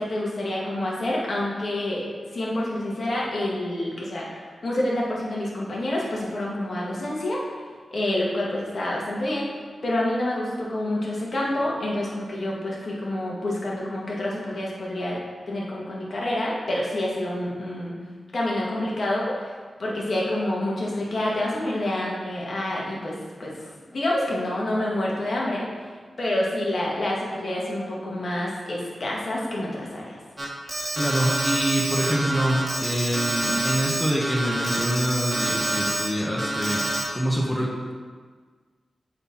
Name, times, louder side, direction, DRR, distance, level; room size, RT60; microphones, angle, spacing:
voice 1, 0.0-2.1 2.3-7.6 7.9-9.5 9.8-15.2 15.5-17.9 18.3-19.5 19.8-25.7 26.2-30.2, left 1 dB, 65° left, -4 dB, 1.8 m, -28 dB
Alarm, 30.4-36.1 36.4-37.0, right 1 dB, 25° right, 1.5 m, -27 dB
voice 2, 30.9-36.8 37.1-37.9, equal, 10° left, -4 dB, 1.2 m, -25 dB
7.8 x 4.1 x 4.5 m, 1.6 s
cardioid pair, 55°, 0 cm